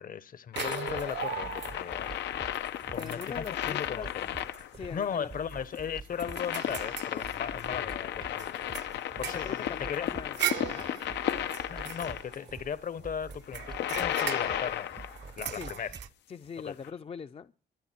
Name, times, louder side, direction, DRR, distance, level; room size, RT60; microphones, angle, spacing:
voice 1, 0.0-2.1 2.9-4.3 4.8-8.5 9.2-10.1 11.7-14.9 15.4-15.9 16.6-16.7, left 7 dB, 50° left, 1.0 m, -37 dB
sound 1, 0.5-12.4 13.4-15.3 16.8-16.9, left 11 dB, 90° left, 0.9 m, -34 dB
sound 2, 0.6-2.1 2.5-2.6 2.9-3.8 4.4-4.6 5.0-5.1 5.5-7.9 8.4-12.8 13.3-16.1, right 12 dB, 85° right, 0.9 m, -39 dB
sound 3, 0.7-16.1, right 4 dB, 25° right, 0.6 m, -48 dB
voice 2, 2.9-4.1 4.7-5.3 9.3-10.9 15.5-15.7 16.3-17.5, left 6 dB, 35° left, 0.6 m, -42 dB
23.0 x 9.3 x 4.4 m
cardioid pair, 100°, 18 cm